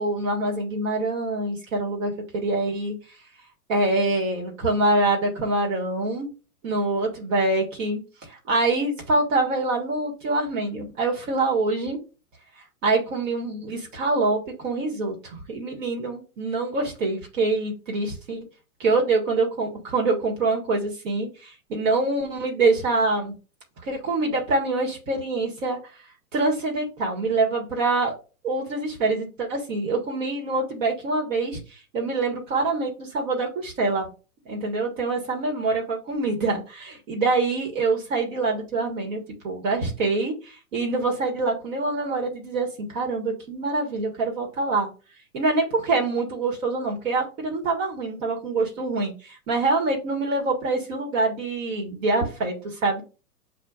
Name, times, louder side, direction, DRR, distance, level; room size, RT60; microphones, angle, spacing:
voice 1, 0.0-3.0 3.7-6.3 6.6-12.0 12.8-18.4 18.8-23.3 23.8-25.8 26.3-28.1 28.4-34.1 34.4-44.9 45.3-53.0, right 3 dB, 55° right, 0 dB, 1.5 m, -25 dB
7.3 x 2.5 x 2.3 m, 0.33 s
hypercardioid pair, 125°, 45 cm